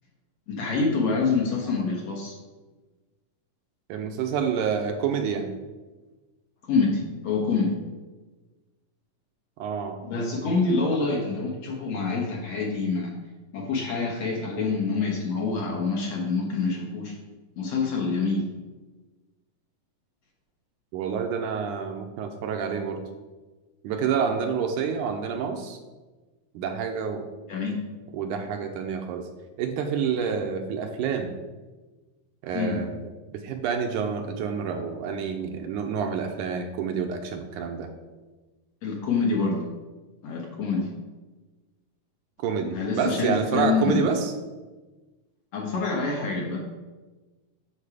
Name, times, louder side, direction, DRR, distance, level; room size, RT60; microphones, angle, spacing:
voice 1, 0.5-2.4 6.7-7.8 10.0-13.1 13.5-17.1 17.6-18.5 27.5-27.8 32.5-32.8 38.8-39.7 40.2-40.9 42.7-44.2 45.5-46.6, left 4 dB, 60° left, 0 dB, 2.0 m, -26 dB
voice 2, 3.9-5.5 9.6-10.0 20.9-23.1 23.8-25.8 26.6-27.3 28.1-29.3 29.6-31.4 32.4-33.0 33.3-37.9 42.4-44.3, right 6 dB, 80° right, 5 dB, 2.0 m, -28 dB
8.8 x 6.3 x 4.9 m, 1.2 s
omnidirectional pair, 3.9 m